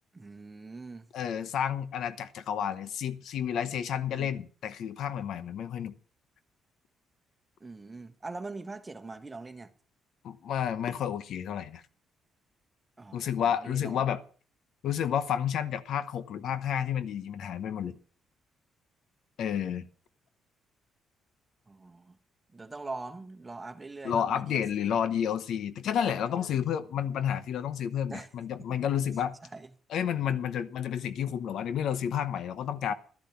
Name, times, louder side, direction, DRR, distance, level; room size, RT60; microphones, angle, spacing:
voice 1, 0.1-1.1 4.1-4.4 7.6-9.7 13.0-14.1 21.7-22.2 22.5-25.0 26.0-26.5 28.1-28.3 28.7-28.8 29.4-29.7, right 3 dB, 20° right, 1.3 m, -43 dB
voice 2, 1.1-5.9 10.2-11.8 13.1-14.2 14.8-18.0 19.4-19.9 24.0-29.4 29.9-32.9, left 9 dB, 75° left, 0.9 m, -30 dB
12.0 x 10.5 x 5.8 m
cardioid pair, 90°, 0 cm